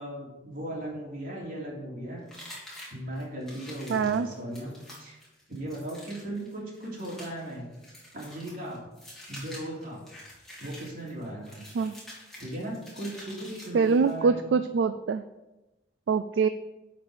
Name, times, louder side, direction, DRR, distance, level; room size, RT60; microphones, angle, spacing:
voice 1, 0.0-2.2 2.9-5.2 5.5-7.7 8.1-8.8 9.3-10.0 10.6-11.6 12.4-14.5, right 1 dB, 50° right, -3 dB, 3.1 m, -37 dB
sound 1, 2.3-14.2, left 1 dB, ahead, 3.0 m, -48 dB
voice 2, 3.9-4.3 11.7-11.9 13.7-15.2 16.1-16.5, right 5 dB, 70° right, 11 dB, 0.3 m, -24 dB
11.5 x 5.2 x 5.0 m, 1.0 s
head